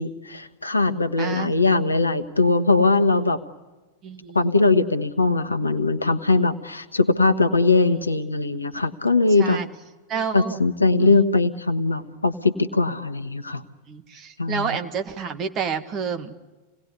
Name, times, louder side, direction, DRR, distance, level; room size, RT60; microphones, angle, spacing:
voice 1, 0.0-3.4 4.3-9.6 10.3-13.6 14.4-14.8, left 3 dB, 80° left, 11 dB, 1.2 m, -21 dB
voice 2, 1.2-1.5 4.0-4.5 9.4-9.7 10.1-10.6 11.0-11.2 13.9-16.3, right 6 dB, 35° right, 7 dB, 1.9 m, -29 dB
27.5 x 18.5 x 9.8 m, 1.2 s
figure-of-eight pair, 90°, 0 cm